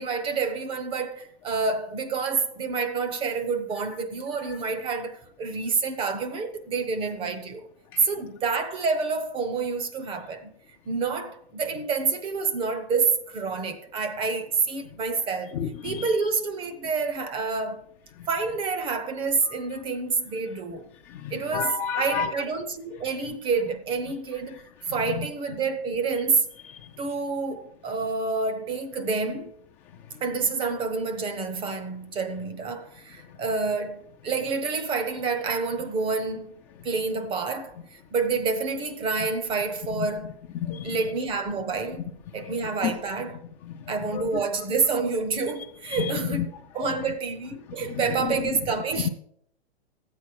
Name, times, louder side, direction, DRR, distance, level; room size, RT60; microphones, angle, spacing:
voice 1, 0.0-7.7 8.0-10.5 10.9-17.9 18.3-20.9 21.3-24.6 24.9-26.5 27.0-29.5 30.2-36.5 36.8-40.4 40.8-43.4 43.9-49.1, right 4 dB, 15° right, 0.7 m, -28 dB
voice 2, 15.6-16.1 21.2-22.3 40.6-41.0 42.8-42.9 44.1-44.3 45.9-46.1, left 7 dB, 20° left, 0.4 m, -29 dB
13.0 x 8.5 x 4.6 m
hypercardioid pair, 140°, 32 cm